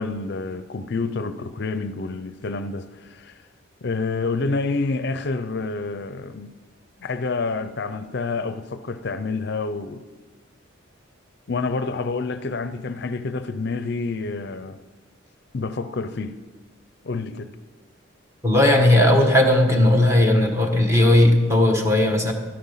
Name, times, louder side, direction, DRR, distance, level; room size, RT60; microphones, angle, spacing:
voice 1, 0.0-3.4 3.8-6.6 7.0-10.1 11.5-14.8 15.5-16.4 17.0-17.6, left 3 dB, 55° left, 0.5 m, -28 dB
voice 2, 18.4-22.3, left 1 dB, 15° right, 1.5 m, -17 dB
13.0 x 11.5 x 5.6 m
head